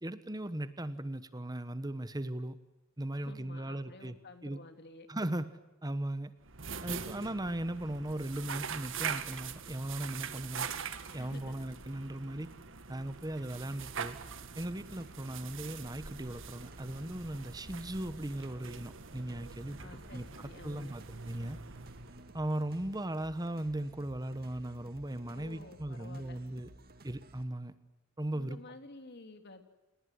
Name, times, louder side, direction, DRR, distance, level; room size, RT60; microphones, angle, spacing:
voice 1, 0.0-2.6 3.0-4.2 4.4-4.6 5.1-5.5 5.8-6.3 6.8-10.7 11.1-12.5 12.9-14.2 14.6-21.6 22.3-26.7 27.0-27.7 28.2-28.6, right 1 dB, 20° right, 13 dB, 1.1 m, -38 dB
voice 2, 3.2-5.1 11.1-11.6 19.8-20.9 25.3-26.4 28.3-29.6, left 2 dB, 55° left, 7 dB, 3.1 m, -51 dB
sound 1, 6.4-22.6, right 6 dB, 65° right, 1.8 m, -43 dB
sound 2, 13.7-27.4, right 1 dB, 50° right, 1.9 m, -56 dB
29.0 x 20.0 x 9.5 m, 1.0 s
head